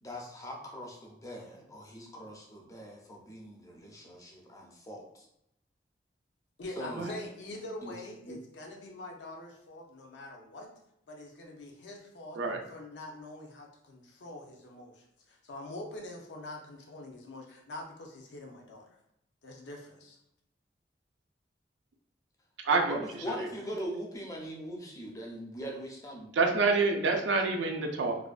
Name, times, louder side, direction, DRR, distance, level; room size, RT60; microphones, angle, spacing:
voice 1, 0.0-5.3 6.8-7.2 7.8-7.9 8.2-8.4 22.9-26.4, equal, 20° left, -1 dB, 0.4 m, -41 dB
voice 2, 6.6-10.7 11.1-12.4 12.7-19.0 19.4-20.2, left 1 dB, 75° left, 1 dB, 0.5 m, -45 dB
voice 3, 22.6-23.3 26.3-28.2, right 3 dB, 80° right, 3 dB, 0.4 m, -27 dB
2.4 x 2.1 x 2.4 m, 0.80 s
head